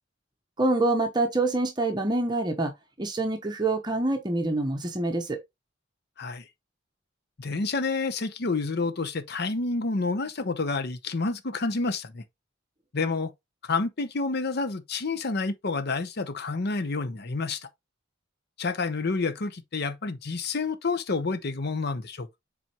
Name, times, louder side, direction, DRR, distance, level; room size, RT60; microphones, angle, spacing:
voice 1, 0.6-2.7 3.0-5.4, right 2 dB, 25° right, 0.9 m, -26 dB
voice 2, 7.4-12.2 12.9-13.3 13.6-17.7 18.6-22.4, left 3 dB, 55° left, 0.8 m, -29 dB
7.4 x 4.3 x 2.9 m
head